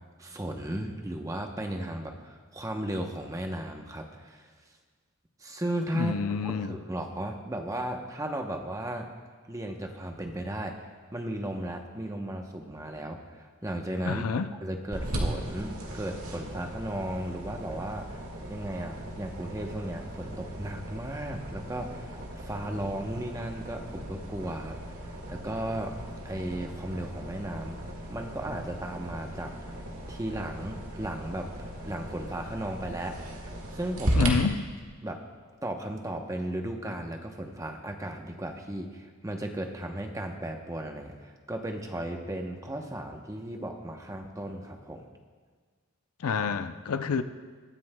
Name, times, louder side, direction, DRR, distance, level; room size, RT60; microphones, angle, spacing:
voice 1, 0.2-4.4 5.4-9.1 9.5-10.9 11.1-14.2 14.6-18.2 18.5-24.8 25.3-26.0 26.2-27.8 28.1-29.5 30.1-31.5 31.8-34.3 35.0-35.2 35.6-45.1, right 1 dB, 15° right, 3 dB, 0.8 m, -35 dB
voice 2, 5.9-6.7 14.1-14.5 34.1-34.6 46.2-47.2, left 5 dB, 80° left, 11 dB, 0.5 m, -28 dB
sound 1, 14.9-34.3, right 1 dB, 70° right, 1.8 m, -37 dB
21.5 x 9.4 x 2.2 m, 1.5 s
head